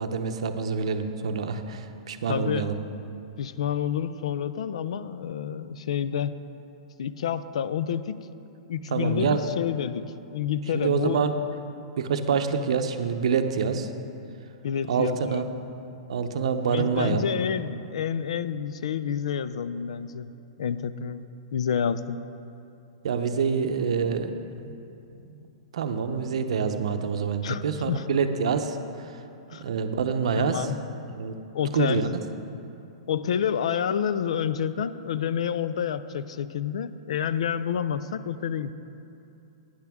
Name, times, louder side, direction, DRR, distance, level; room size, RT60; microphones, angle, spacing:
voice 1, 0.0-2.8 8.9-9.5 10.7-11.3 12.0-13.9 14.9-15.4 16.1-17.2 23.0-24.3 25.1-25.4 25.7-28.8 29.5-30.7 31.2-31.4 31.7-32.1, right 6 dB, 65° right, 8 dB, 0.7 m, -26 dB
voice 2, 2.3-2.7 3.4-6.4 7.0-8.3 8.7-11.2 14.6-15.5 16.7-20.3 20.6-21.2 21.5-22.2 27.4-28.1 29.5-29.6 30.4-30.8 31.5-32.1 33.1-38.7, left 8 dB, 65° left, 14 dB, 0.4 m, -29 dB
12.0 x 9.6 x 3.6 m, 2.7 s
supercardioid pair, 180°, 3 cm